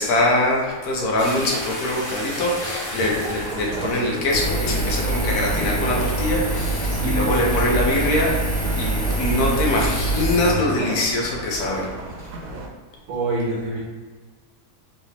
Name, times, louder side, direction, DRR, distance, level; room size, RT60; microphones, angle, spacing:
voice 1, 0.0-8.4 8.7-11.9 12.2-12.3, left 1 dB, 75° left, -2 dB, 1.3 m, -23 dB
sound 1, 1.2-9.4, equal, 55° left, 1.6 m, -35 dB
voice 2, 2.1-2.4 6.9-7.7 13.1-13.8, right 2 dB, 60° right, -5 dB, 1.3 m, -27 dB
sound 2, 3.1-12.7, right 2 dB, 85° right, 1.1 m, -35 dB
Engine, 4.3-10.5, right 2 dB, 30° left, 1.5 m, -24 dB
3.3 x 3.0 x 2.8 m, 1.4 s
omnidirectional pair, 1.6 m